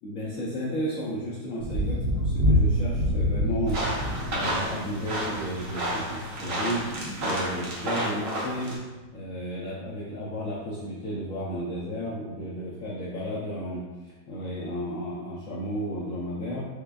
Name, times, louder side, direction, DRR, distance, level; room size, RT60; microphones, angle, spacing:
voice 1, 0.0-3.8 4.3-6.8 7.2-8.8 9.1-13.8 14.3-16.6, equal, 75° left, -6 dB, 0.7 m, -33 dB
Thunder, 1.6-5.5 6.8-6.9, left 1 dB, 80° right, 1.3 m, -27 dB
sound 1, 1.8-10.0, equal, 40° left, 0.7 m, -35 dB
sound 2, 3.7-8.8, right 1 dB, 60° right, 0.9 m, -31 dB
4.9 x 2.2 x 2.3 m, 1.2 s
omnidirectional pair, 2.0 m